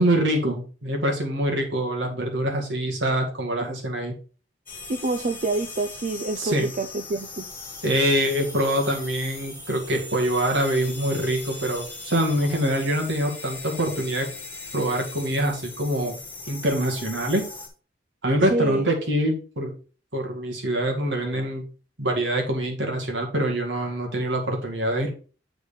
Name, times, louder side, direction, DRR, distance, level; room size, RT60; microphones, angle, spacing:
voice 1, 0.0-4.1 6.4-6.7 7.8-14.3 14.7-16.2 16.5-17.4 18.2-19.7 20.1-21.6 22.0-25.1, right 1 dB, 70° right, 2 dB, 2.0 m, -24 dB
sound 1, 4.7-17.7, left 3 dB, 10° left, 1.8 m, -39 dB
voice 2, 4.9-7.5 18.5-18.9, right 2 dB, 45° right, 8 dB, 0.5 m, -27 dB
7.8 x 4.0 x 5.2 m, 0.38 s
head